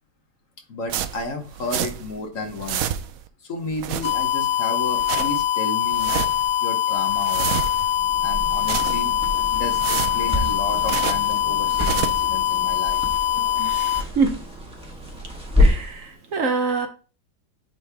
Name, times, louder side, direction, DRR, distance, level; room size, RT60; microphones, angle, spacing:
voice 1, 0.7-2.8 3.4-6.1 6.6-7.6 8.2-9.1 9.5-13.0, left 2 dB, 55° left, 1.1 m, -32 dB
sound 1, 0.9-2.2 2.4-3.3 3.7-4.5 4.8-5.4 5.8-6.5 6.9-8.0 8.4-9.3 9.6-11.4 11.7-12.3, right 10 dB, 90° right, 0.7 m, -29 dB
sound 2, 4.0-14.0, left 11 dB, 75° left, 1.3 m, -23 dB
sound 3, 7.9-16.0, left 1 dB, 5° right, 1.1 m, -27 dB
voice 2, 13.6-14.5 15.6-16.9, right 4 dB, 55° right, 0.9 m, -25 dB
8.9 x 3.2 x 3.4 m
omnidirectional pair, 2.0 m